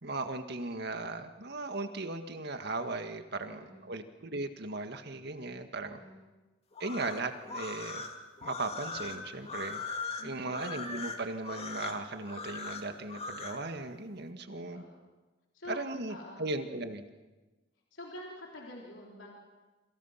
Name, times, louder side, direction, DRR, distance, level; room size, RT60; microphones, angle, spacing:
voice 1, 0.0-6.0 6.8-8.1 8.4-9.8 10.2-14.8 15.7-17.0, right 2 dB, 60° right, 7 dB, 1.8 m, -37 dB
voice 2, 3.5-3.9 5.9-6.2 10.2-10.6 14.5-15.0 15.5-16.5 17.9-19.3, left 1 dB, 85° left, -2 dB, 3.7 m, -47 dB
sound 1, 6.7-13.6, left 4 dB, 35° left, 2.4 m, -40 dB
27.5 x 26.5 x 5.9 m, 1.2 s
head